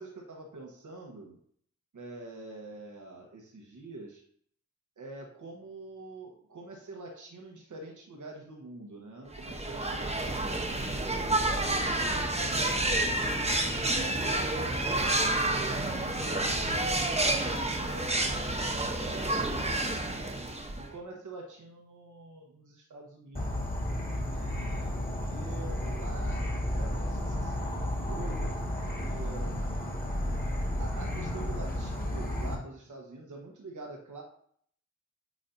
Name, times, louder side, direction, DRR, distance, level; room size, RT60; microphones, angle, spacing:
voice 1, 0.0-1.4 1.9-4.2 5.0-13.2 13.9-20.3 20.9-23.8 24.3-29.7 30.8-34.2, right 2 dB, 90° right, 0 dB, 1.2 m, -46 dB
sound 1, 9.3-20.9, right 2 dB, 20° right, 0.9 m, -29 dB
Insect / Frog, 23.3-32.5, left 1 dB, 30° left, 1.9 m, -32 dB
9.3 x 4.2 x 2.7 m, 0.62 s
cardioid pair, 60°, 30 cm